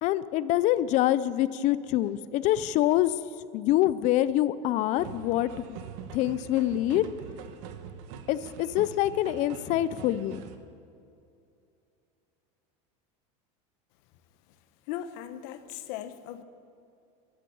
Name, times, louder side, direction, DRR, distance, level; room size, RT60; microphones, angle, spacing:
voice 1, 0.0-3.1 3.5-5.8 6.1-7.0 8.3-10.5, left 13 dB, 50° left, 16 dB, 0.6 m, -25 dB
sound 1, 5.0-10.6, right 8 dB, 70° right, 1.2 m, -44 dB
voice 2, 14.9-16.4, left 11 dB, 65° left, 11 dB, 1.0 m, -38 dB
14.0 x 12.0 x 7.0 m, 2.6 s
supercardioid pair, 140°, 16 cm